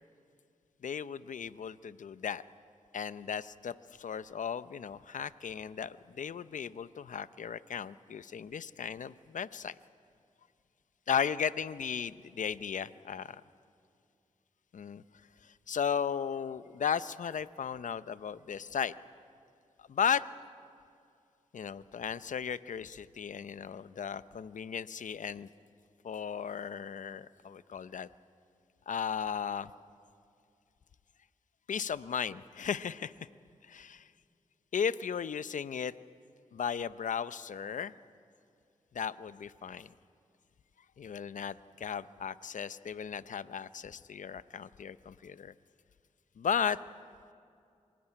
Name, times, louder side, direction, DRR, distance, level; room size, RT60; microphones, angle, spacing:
voice 1, 0.8-2.4 2.9-9.7 11.1-13.4 14.7-15.0 15.4-18.9 19.8-20.3 21.5-25.5 26.0-28.1 28.9-29.7 31.7-33.3 33.7-34.1 34.7-35.9 36.5-37.9 38.9-39.9 41.0-45.5 46.4-46.8, left 7 dB, 70° left, 15 dB, 0.7 m, -35 dB
26.0 x 16.5 x 10.0 m, 2.5 s
cardioid pair, 55°, 13 cm